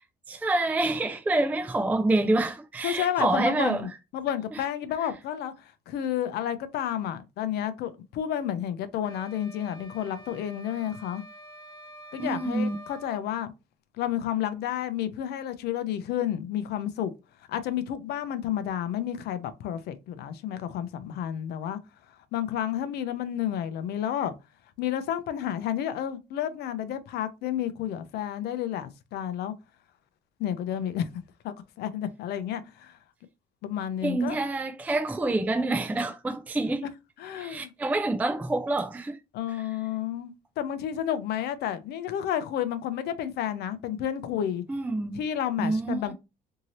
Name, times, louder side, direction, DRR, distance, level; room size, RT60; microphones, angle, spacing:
voice 1, 0.3-3.9 4.5-4.6 12.2-12.8 34.0-36.8 37.4-39.2 39.5-39.6 44.7-45.2 45.6-46.1, right 2 dB, 10° right, 0.3 m, -27 dB
voice 2, 2.8-11.2 12.1-13.5 14.0-17.1 17.5-21.8 22.3-24.3 24.8-29.5 30.4-33.0 33.6-34.4 36.6-36.7 37.2-37.7 39.3-44.6 45.1-46.1, left 10 dB, 75° left, 0.5 m, -31 dB
sound 1, 9.0-13.3, right 1 dB, 30° left, 0.7 m, -47 dB
2.7 x 2.7 x 3.0 m
cardioid pair, 110°, 17 cm